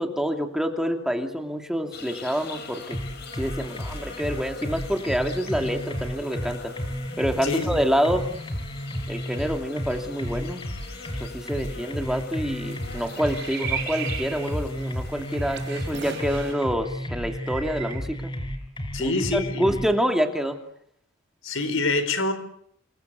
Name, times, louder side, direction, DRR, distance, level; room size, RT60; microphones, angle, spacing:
voice 1, 0.0-3.0 3.4-6.7 7.2-8.2 9.1-10.6 11.2-18.2 19.0-20.6, equal, ahead, 4 dB, 2.8 m, -27 dB
sound 1, 1.9-16.5, left 4 dB, 50° left, 6.7 m, -42 dB
sound 2, 2.9-19.9, equal, 25° left, 5.3 m, -32 dB
sound 3, 12.3-16.8 17.3-18.0, right 8 dB, 55° right, 3.8 m, -37 dB
voice 2, 18.9-19.6 21.4-22.3, left 3 dB, 75° left, 12 dB, 4.9 m, -25 dB
29.0 x 23.5 x 8.3 m, 0.69 s
head